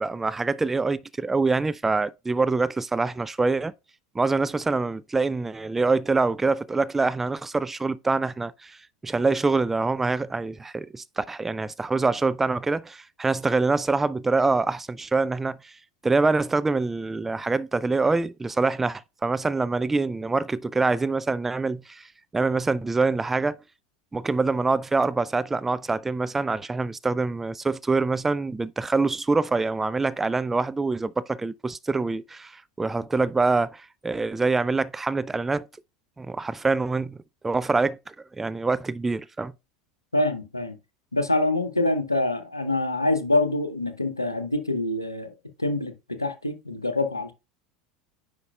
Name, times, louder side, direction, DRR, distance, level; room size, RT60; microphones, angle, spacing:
voice 1, 0.0-3.7 4.2-8.8 9.0-15.7 16.0-22.1 22.3-23.6 24.1-35.7 36.2-37.2 37.4-38.0 38.4-39.5, right 3 dB, 10° right, 0.3 m, -25 dB
voice 2, 40.1-40.8 41.1-45.3 45.6-47.3, left 2 dB, 90° left, 0.7 m, -25 dB
9.6 x 5.0 x 2.3 m
figure-of-eight pair, 75°, 2 cm